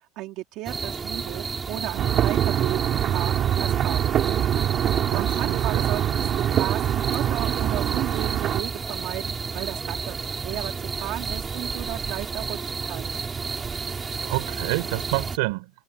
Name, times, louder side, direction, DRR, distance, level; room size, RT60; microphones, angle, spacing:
voice 1, 0.2-4.1 5.1-13.1, right 17 dB, 50° right, 3.4 m, -35 dB
sound 1, 0.6-15.4, right 5 dB, 15° right, 3.9 m, -31 dB
sound 2, 2.0-8.6, right 11 dB, 35° right, 4.4 m, -24 dB
voice 2, 5.1-5.9 14.2-15.7, right 25 dB, 85° right, 5.0 m, -28 dB
cardioid pair, 175°, 0 cm